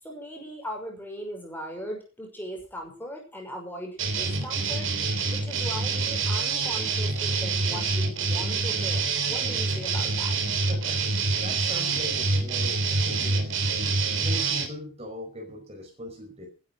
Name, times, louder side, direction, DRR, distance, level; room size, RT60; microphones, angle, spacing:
voice 1, 0.0-4.9 5.3-10.3, equal, 10° left, 1 dB, 5.8 m, -39 dB
sound 1, 4.0-14.7, right 4 dB, 70° right, 3.4 m, -26 dB
voice 2, 10.7-11.0 11.3-16.5, equal, 30° right, 1 dB, 5.3 m, -40 dB
15.5 x 12.5 x 6.4 m, 0.35 s
head